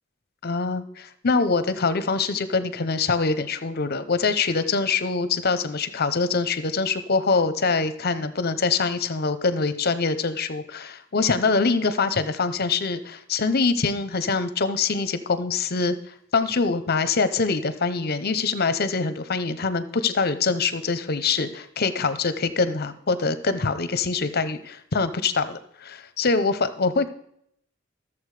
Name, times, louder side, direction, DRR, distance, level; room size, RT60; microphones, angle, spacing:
voice 1, 0.4-15.9 16.3-27.1, left 4 dB, 50° left, 12 dB, 0.8 m, -24 dB
13.5 x 7.2 x 4.9 m, 0.71 s
head